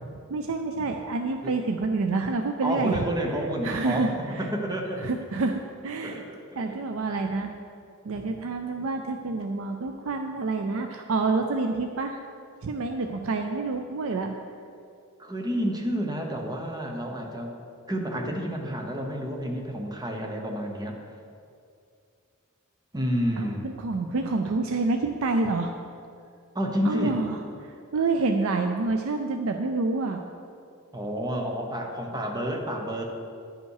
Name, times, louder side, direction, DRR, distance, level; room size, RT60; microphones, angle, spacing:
voice 1, 0.3-3.0 3.6-4.5 5.0-6.2 6.6-7.5 8.0-12.2 12.6-14.4 23.4-25.7 26.8-30.3, right 3 dB, 70° right, 5 dB, 0.5 m, -28 dB
voice 2, 2.6-5.1 6.0-6.6 7.2-7.3 15.2-17.5 17.9-21.0 22.9-23.7 26.5-27.2 30.9-33.0, equal, 20° right, 2 dB, 0.9 m, -30 dB
10.5 x 5.5 x 4.7 m, 2.4 s
head